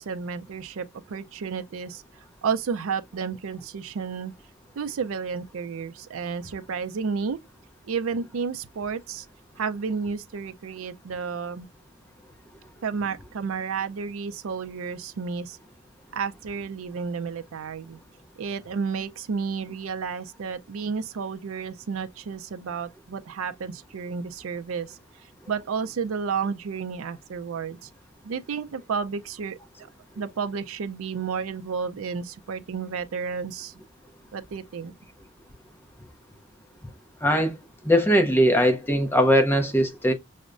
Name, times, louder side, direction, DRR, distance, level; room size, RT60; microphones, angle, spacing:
voice 1, 0.0-2.0 2.4-4.3 4.8-7.4 7.9-9.3 9.6-11.7 12.8-15.6 16.1-18.0 18.4-24.9 25.5-27.8 28.2-29.6 30.2-33.7 34.3-34.9, right 5 dB, 80° right, 0.4 m, -31 dB
voice 2, 37.2-37.6 37.8-40.1, equal, 10° left, 0.6 m, -20 dB
6.1 x 2.1 x 2.4 m
head